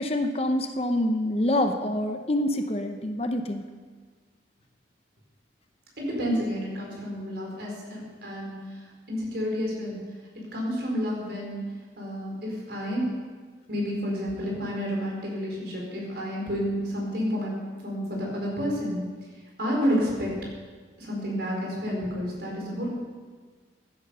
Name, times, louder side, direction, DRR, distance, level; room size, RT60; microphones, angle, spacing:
voice 1, 0.0-3.6, left 1 dB, 35° left, 6 dB, 0.8 m, -26 dB
voice 2, 6.0-10.0 10.5-11.6 12.0-13.1 13.7-17.5 17.8-19.0 19.6-20.3 21.0-22.9, equal, 65° right, -2 dB, 4.5 m, -30 dB
15.5 x 10.0 x 5.5 m, 1.5 s
head